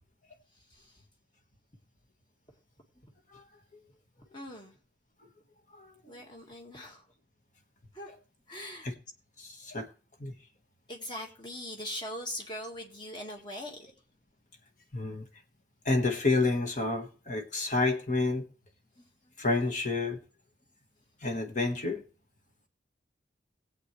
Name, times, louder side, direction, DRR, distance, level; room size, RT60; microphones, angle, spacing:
voice 1, 0.5-1.0 4.3-4.8 6.1-7.1 7.9-8.1 8.5-8.9 10.9-13.9, left 1 dB, 25° left, 1.8 m, -41 dB
voice 2, 9.4-9.9 10.2-10.3 14.9-15.2 15.8-18.5 19.4-20.2 21.2-22.0, left 3 dB, 40° left, 1.4 m, -29 dB
20.0 x 8.0 x 3.2 m
head